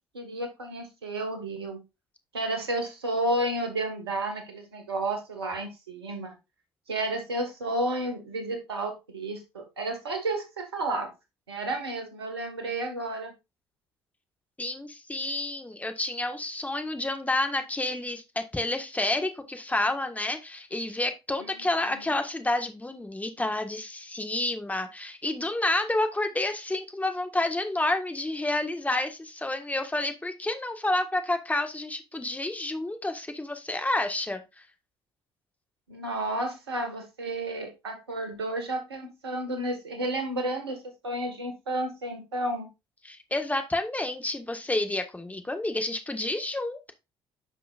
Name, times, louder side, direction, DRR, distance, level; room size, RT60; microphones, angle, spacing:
voice 1, 0.1-1.8 2.3-6.3 6.9-11.1 11.5-13.3 21.4-21.5 22.0-22.1 35.9-42.7, right 1 dB, 90° right, 5 dB, 1.7 m, -31 dB
voice 2, 14.6-34.4 43.1-46.9, left 2 dB, 10° left, 6 dB, 1.6 m, -29 dB
10.0 x 5.8 x 2.5 m, 0.24 s
hypercardioid pair, 50°, 13 cm